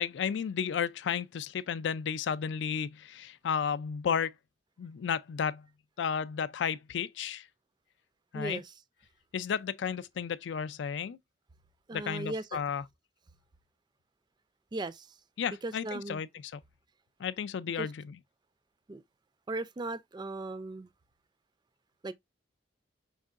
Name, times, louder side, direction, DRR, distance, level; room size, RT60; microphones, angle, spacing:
voice 1, 0.0-4.3 4.8-5.7 6.0-7.5 8.3-8.6 9.3-11.2 11.9-12.8 15.4-16.6 17.2-18.1, left 7 dB, 75° left, 0.4 m, -33 dB
voice 2, 8.3-8.7 11.9-12.6 14.7-15.1 15.6-16.2 17.8-17.9 18.9-19.0 19.5-20.9 22.0-22.1, right 2 dB, 25° right, 0.4 m, -37 dB
5.4 x 3.6 x 2.4 m
head